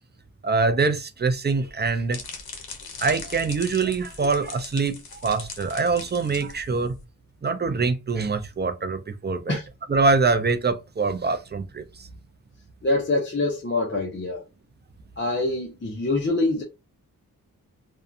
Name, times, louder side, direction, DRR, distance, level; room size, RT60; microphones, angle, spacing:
voice 1, 0.4-2.2 3.0-6.9 7.4-9.6 9.9-12.1, right 4 dB, 30° right, 0.4 m, -24 dB
sound 1, 1.6-7.0, left 4 dB, 75° left, 0.8 m, -40 dB
voice 2, 12.8-14.4 15.2-16.6, left 2 dB, 30° left, 0.7 m, -25 dB
2.6 x 2.2 x 2.4 m
cardioid pair, 65°, 37 cm